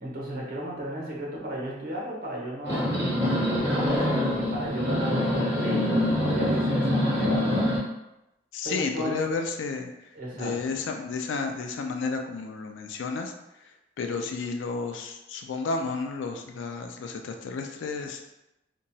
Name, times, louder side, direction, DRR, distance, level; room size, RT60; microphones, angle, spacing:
voice 1, 0.0-4.1 4.4-7.8 8.6-9.3 10.1-10.6, right 1 dB, 50° right, -4 dB, 0.8 m, -34 dB
sound 1, 2.6-7.8, left 1 dB, 10° right, 1.4 m, -25 dB
voice 2, 8.5-9.9 10.4-13.3 14.0-18.2, left 4 dB, 85° left, 5 dB, 0.4 m, -31 dB
2.9 x 2.2 x 2.7 m, 0.92 s
head